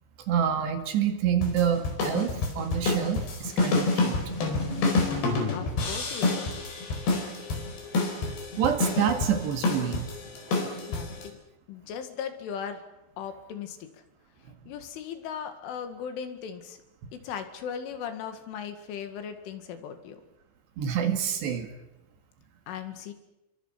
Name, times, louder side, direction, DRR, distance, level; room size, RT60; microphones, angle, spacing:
voice 1, 0.3-4.2 7.1-7.2 8.6-10.1 10.5-10.7 20.8-21.7, right 8 dB, 65° right, 6 dB, 3.9 m, -27 dB
sound 1, 1.4-11.3, left 3 dB, 55° left, 6.3 m, -28 dB
voice 2, 5.5-6.5 10.9-11.4 11.7-12.8 13.2-14.0 14.7-16.8 17.1-20.2 22.7-23.1, left 7 dB, 75° left, 8 dB, 4.5 m, -38 dB
30.0 x 23.5 x 6.0 m, 0.95 s
omnidirectional pair, 5.7 m